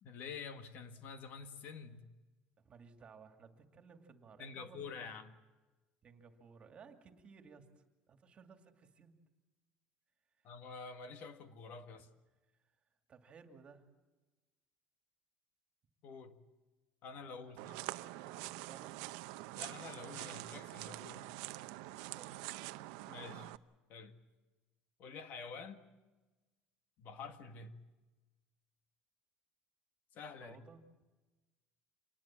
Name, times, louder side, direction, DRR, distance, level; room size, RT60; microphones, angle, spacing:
voice 1, 0.0-2.1 4.4-5.3 10.4-12.1 16.0-16.4 17.0-17.9 19.5-21.3 23.1-23.5 23.9-24.1 25.0-25.8 27.0-27.8 30.1-30.6, left 5 dB, 50° left, 8 dB, 1.8 m, -48 dB
voice 2, 2.6-5.1 6.0-9.2 10.4-10.5 12.6-12.8 13.1-13.9 17.4-17.5 18.2-19.0 22.0-22.6 30.3-30.8, right 5 dB, 30° right, 6 dB, 2.4 m, -58 dB
sound 1, 17.6-23.6, right 18 dB, 85° right, 0.8 m, -45 dB
26.5 x 20.0 x 7.5 m, 1.2 s
cardioid pair, 145°, 4 cm